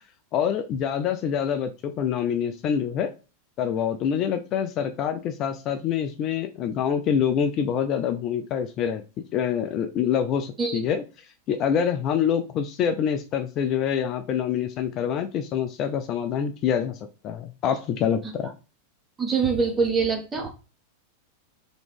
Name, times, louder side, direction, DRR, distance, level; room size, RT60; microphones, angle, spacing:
voice 1, 0.3-3.1 3.6-9.0 9.3-11.0 11.5-17.0 17.2-18.5, left 8 dB, 40° left, 7 dB, 0.4 m, -26 dB
voice 2, 19.2-20.5, right 5 dB, 15° right, 1 dB, 1.4 m, -24 dB
4.0 x 3.0 x 3.3 m, 0.32 s
figure-of-eight pair, 95°, 0 cm